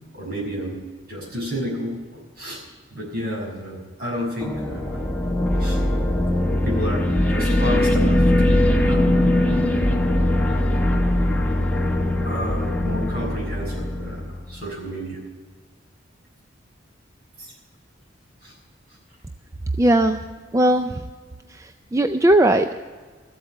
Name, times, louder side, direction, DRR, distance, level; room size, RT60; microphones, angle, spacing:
voice 1, 0.1-0.8 1.1-2.6 2.9-5.0 5.5-5.8 6.6-9.5 12.2-15.2 17.4-17.5 18.4-18.5, equal, 55° right, -2 dB, 5.9 m, -31 dB
sound 1, 4.4-14.6, left 1 dB, 5° left, 1.2 m, -21 dB
voice 2, 19.8-20.2 20.5-21.1 21.5-22.8, right 1 dB, 15° right, 8 dB, 0.4 m, -19 dB
14.5 x 8.1 x 8.8 m, 1.5 s
head